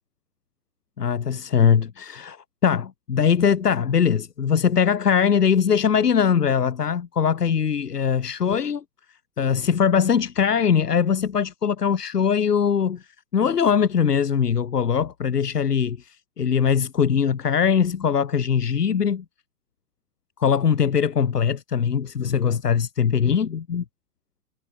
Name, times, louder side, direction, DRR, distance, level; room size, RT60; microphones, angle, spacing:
voice 1, 1.0-2.4 2.6-8.8 9.4-13.0 13.3-19.2 20.4-23.8, left 7 dB, 85° left, 2.5 m, -21 dB
hypercardioid pair, 140°, 46 cm